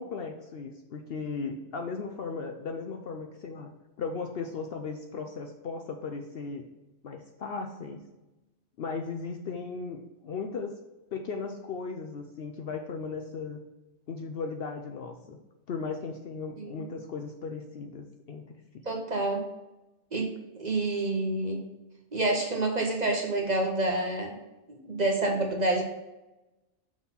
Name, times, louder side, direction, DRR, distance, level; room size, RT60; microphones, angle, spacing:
voice 1, 0.0-3.7 4.0-6.7 7.0-8.1 8.8-10.7 11.1-13.6 14.1-15.4 15.7-18.5 18.7-18.8, left 4 dB, 60° left, 4 dB, 0.7 m, -36 dB
voice 2, 18.9-19.4 20.1-20.3 20.5-21.6 22.1-24.4 24.7-25.8, right 2 dB, 40° right, 1 dB, 0.7 m, -28 dB
5.9 x 3.9 x 5.6 m, 1.0 s
omnidirectional pair, 1.3 m